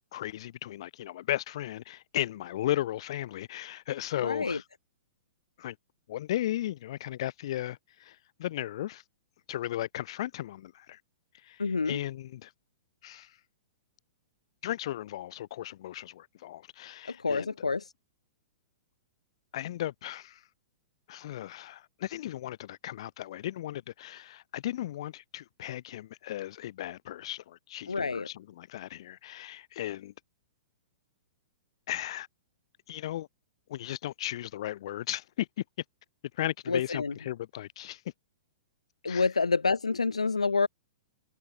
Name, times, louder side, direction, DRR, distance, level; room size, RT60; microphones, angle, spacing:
voice 1, 0.1-4.6 5.6-5.8 6.1-9.0 9.5-11.0 11.4-12.5 13.0-13.3 14.6-17.5 19.5-20.4 21.1-30.1 31.9-32.3 32.9-33.3 33.7-35.5 36.4-38.0 39.1-39.3, left 13 dB, 55° left, 1.2 m, -36 dB
voice 2, 4.2-4.6 11.6-12.0 17.1-17.8 27.9-28.3 36.7-37.1 39.0-40.7, left 4 dB, 90° left, 0.4 m, -28 dB
figure-of-eight pair, 110°, 3 cm